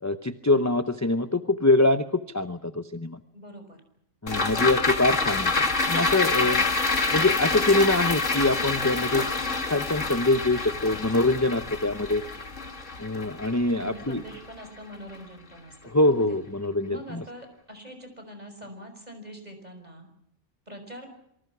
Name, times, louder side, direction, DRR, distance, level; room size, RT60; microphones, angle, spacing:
voice 1, 0.0-3.2 4.2-6.6 7.1-9.2 9.7-12.2 13.0-14.2 15.8-17.2, left 2 dB, 15° left, 9 dB, 0.8 m, -24 dB
voice 2, 3.3-3.8 4.4-4.9 6.4-6.9 13.7-16.4 16.9-20.1 20.7-21.1, equal, 35° right, 6 dB, 5.8 m, -44 dB
sound 1, 4.3-14.8 15.1-15.2, left 3 dB, 85° left, 2.8 m, -27 dB
27.0 x 24.5 x 6.1 m, 0.76 s
omnidirectional pair, 1.3 m